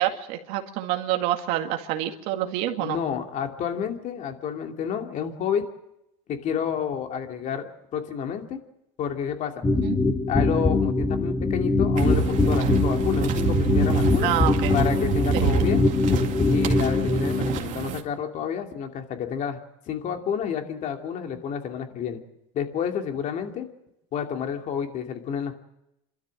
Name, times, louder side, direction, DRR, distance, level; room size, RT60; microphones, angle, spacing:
voice 1, 0.0-3.0 9.8-10.0 14.2-14.7 15.3-15.5, right 13 dB, 65° right, 4 dB, 2.0 m, -27 dB
voice 2, 2.8-5.7 6.3-8.6 9.0-9.6 10.3-14.3 14.7-15.8 16.5-19.6 19.9-22.2 22.5-23.7 24.1-25.5, left 8 dB, 50° left, 4 dB, 2.7 m, -30 dB
sound 1, 9.6-17.6, left 3 dB, 20° left, 1.9 m, -22 dB
sound 2, 12.0-18.0, right 8 dB, 50° right, 2.3 m, -28 dB
27.5 x 13.0 x 7.7 m, 0.84 s
supercardioid pair, 100°, 17 cm